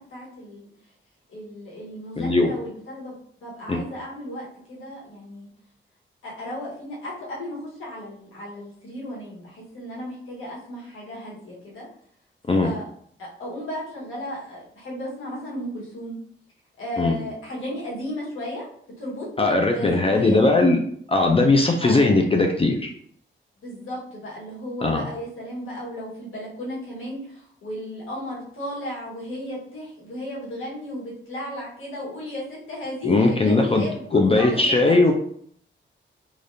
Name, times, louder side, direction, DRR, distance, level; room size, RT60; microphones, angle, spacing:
voice 1, 0.1-0.7 1.3-3.1 3.4-5.5 6.2-11.9 12.6-12.9 13.2-16.2 16.8-18.7 19.0-20.4 21.8-22.0 23.6-35.0, left 1 dB, 90° left, -5 dB, 1.4 m, -35 dB
voice 2, 2.2-2.5 3.7-3.8 12.5-12.7 17.0-17.1 19.4-20.8 21.1-22.9 24.8-25.0 33.1-33.9 34.1-35.1, left 2 dB, 30° left, 2 dB, 0.4 m, -19 dB
3.3 x 2.4 x 2.6 m, 0.62 s
cardioid pair, 80°, 21 cm